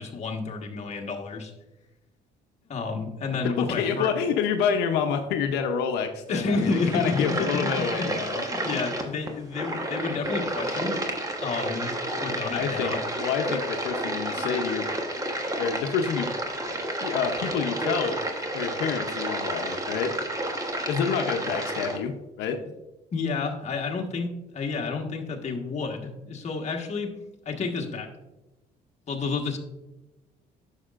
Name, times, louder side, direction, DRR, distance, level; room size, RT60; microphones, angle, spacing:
voice 1, 0.0-1.5 2.6-4.1 6.3-7.5 8.0-8.1 8.5-10.9 11.4-13.0 23.1-27.1 27.4-28.1 29.1-29.6, left 4 dB, 40° left, 1 dB, 1.4 m, -30 dB
voice 2, 3.6-8.8 12.5-14.9 15.6-16.3 17.0-18.2 18.5-20.1 20.9-22.6, left 7 dB, 90° left, 5 dB, 0.7 m, -28 dB
sound 1, 6.4-22.0, right 1 dB, 20° right, 1.2 m, -31 dB
9.7 x 6.5 x 2.5 m, 1.0 s
cardioid pair, 110°, 17 cm